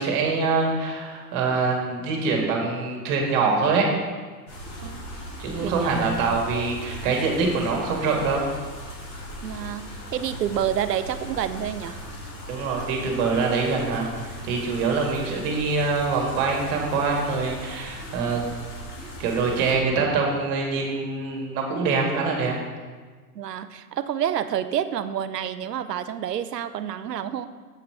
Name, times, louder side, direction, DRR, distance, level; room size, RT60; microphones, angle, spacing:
voice 1, 0.0-3.9 5.4-8.5 12.5-18.4 19.2-22.6, right 4 dB, 45° right, 0 dB, 1.9 m, -24 dB
sound 1, 4.5-19.7, equal, 60° left, 2.5 m, -38 dB
voice 2, 4.8-5.1 5.6-6.0 9.4-12.0 23.3-27.5, right 9 dB, 80° right, 12 dB, 0.6 m, -29 dB
7.9 x 5.8 x 4.7 m, 1.4 s
figure-of-eight pair, 90°, 48 cm